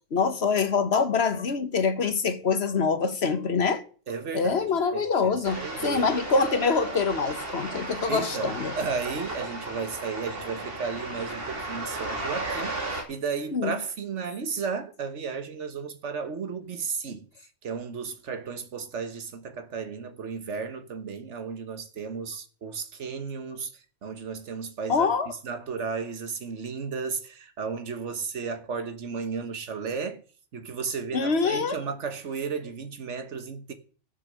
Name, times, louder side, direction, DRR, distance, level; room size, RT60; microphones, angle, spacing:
voice 1, 0.1-3.8 4.3-8.7 13.5-13.7 24.9-25.3 31.1-31.8, left 5 dB, 60° left, 1.4 m, -25 dB
voice 2, 4.1-6.1 8.1-30.2 30.5-33.7, right 5 dB, 70° right, 1.6 m, -34 dB
sound 1, 5.4-13.0, right 2 dB, 50° right, 2.8 m, -34 dB
13.5 x 7.3 x 6.7 m
omnidirectional pair, 1.3 m